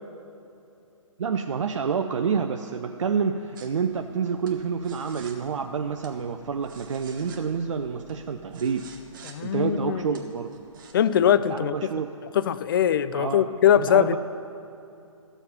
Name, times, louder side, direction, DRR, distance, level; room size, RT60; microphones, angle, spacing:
voice 1, 1.2-8.8 9.4-10.5 11.5-12.1 13.1-14.2, right 6 dB, 60° right, 6 dB, 0.5 m, -28 dB
sound 1, 3.6-10.9, right 5 dB, 35° right, 1.1 m, -50 dB
voice 2, 9.2-10.0 10.9-11.7 12.3-14.2, left 9 dB, 40° left, 15 dB, 0.4 m, -21 dB
13.5 x 7.1 x 5.5 m, 2.7 s
figure-of-eight pair, 135°, 18 cm